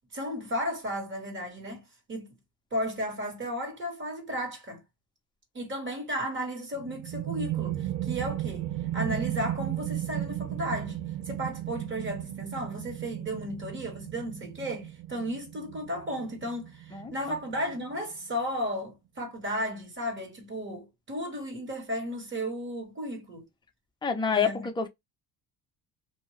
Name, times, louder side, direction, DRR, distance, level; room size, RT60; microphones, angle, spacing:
voice 1, 0.1-1.8 2.1-2.3 2.7-4.8 5.5-8.7 8.9-11.0 11.3-23.4 24.3-24.7, equal, 35° right, 1.6 m, -34 dB
sound 1, 6.7-18.1, right 13 dB, 80° right, 0.6 m, -35 dB
voice 2, 24.0-24.9, left 6 dB, 15° left, 0.6 m, -27 dB
2.7 x 2.2 x 3.1 m
cardioid pair, 110°, 35 cm